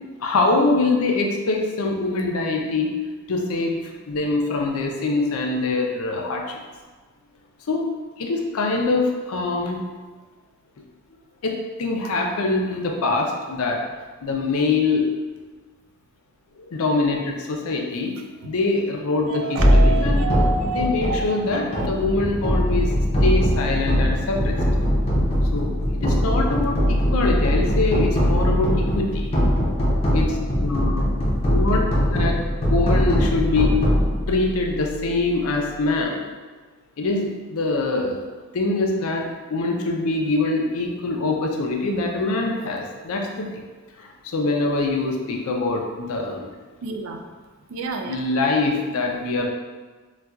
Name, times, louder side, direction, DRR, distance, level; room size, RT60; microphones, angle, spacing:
voice 1, 0.2-3.0 3.3-3.8 4.1-6.6 7.7-7.9 8.2-9.8 11.4-13.8 14.2-15.1 16.6-20.2 20.7-22.9 23.2-24.6 25.5-29.3 30.1-31.1 31.5-33.8 34.3-36.2 37.0-38.3 38.5-43.6 44.0-46.5 48.1-49.5, left 3 dB, 85° left, 1 dB, 0.5 m, -24 dB
voice 2, 19.3-21.9 46.8-47.2 47.7-48.2, right 4 dB, 75° right, 4 dB, 0.3 m, -29 dB
sound 1, 19.6-34.9, equal, 25° left, 0.5 m, -21 dB
4.0 x 2.3 x 2.3 m, 1.4 s
head